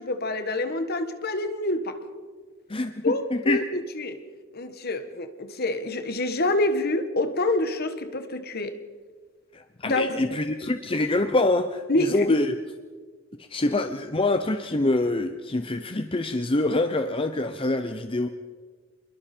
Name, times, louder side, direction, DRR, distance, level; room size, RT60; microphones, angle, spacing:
voice 1, 0.0-2.0 3.0-4.2 4.5-8.8 9.8-10.2 11.9-12.3, left 2 dB, 50° left, 1.5 m, -27 dB
voice 2, 2.7-3.6 9.5-12.6 13.5-18.3, left 2 dB, 25° left, 0.7 m, -25 dB
27.0 x 21.5 x 4.4 m
head